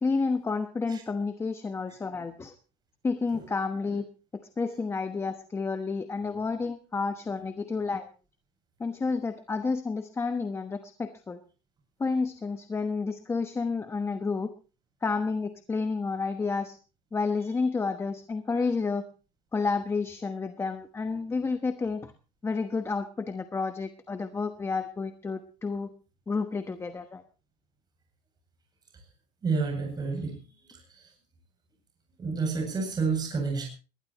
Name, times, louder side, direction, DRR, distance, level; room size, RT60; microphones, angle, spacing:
voice 1, 0.0-2.5 3.0-4.1 4.6-8.1 8.8-11.4 12.0-14.5 15.0-16.8 17.1-19.1 19.5-22.1 22.4-25.9 26.3-27.2, left 4 dB, 15° left, 9 dB, 1.1 m, -30 dB
voice 2, 29.4-30.3 32.2-33.7, right 4 dB, 25° right, 2 dB, 7.9 m, -29 dB
21.0 x 19.5 x 3.1 m, 0.35 s
cardioid pair, 135°, 16 cm